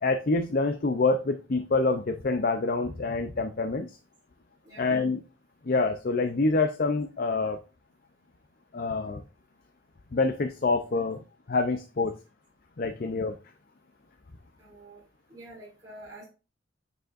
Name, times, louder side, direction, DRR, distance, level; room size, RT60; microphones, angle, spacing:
voice 1, 0.0-4.0 4.8-5.2 5.7-7.6 8.7-9.2 10.1-11.2 11.5-12.1 12.8-13.4, left 3 dB, 50° left, 6 dB, 0.5 m, -26 dB
voice 2, 14.6-15.0 15.3-16.2, right 1 dB, 20° right, -7 dB, 2.6 m, -47 dB
9.0 x 4.9 x 2.5 m, 0.32 s
head